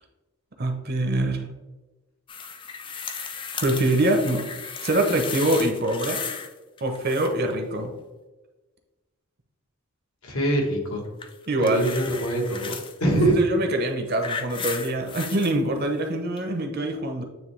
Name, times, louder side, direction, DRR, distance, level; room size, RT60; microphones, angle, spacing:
voice 1, 0.6-1.5 3.6-4.4 4.8-6.2 6.8-7.9 11.5-11.9 13.2-17.2, right 1 dB, 45° right, 4 dB, 0.7 m, -24 dB
sound 1, 2.3-6.5 6.8-7.5 11.2-12.9 13.8-15.5 16.4-16.5, left 6 dB, 20° left, 0.3 m, -35 dB
voice 2, 10.2-11.1 11.6-13.3, right 1 dB, 75° left, 0 dB, 1.4 m, -24 dB
9.1 x 3.2 x 3.2 m, 1.2 s
head